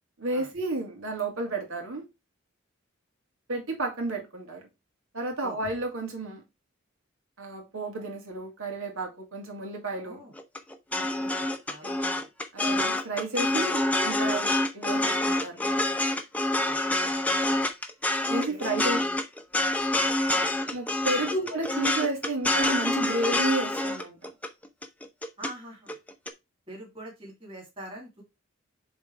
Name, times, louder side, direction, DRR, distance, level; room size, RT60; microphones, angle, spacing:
voice 1, 0.2-2.0 3.5-4.6 5.1-6.4 7.4-10.2 11.8-11.9 12.5-15.8 18.3-19.0 20.7-24.3, right 2 dB, 90° right, 2.5 m, -32 dB
voice 2, 10.0-10.3 10.9-11.3 11.7-12.2 12.7-12.9 16.6-16.8 17.5-17.7 18.5-19.0 20.3-20.5 21.0-21.2 25.4-26.0 26.7-28.2, right 1 dB, 25° right, 2.5 m, -44 dB
sound 1, 10.4-25.5 25.9-26.3, left 1 dB, 5° left, 0.7 m, -27 dB
7.0 x 3.8 x 4.6 m
head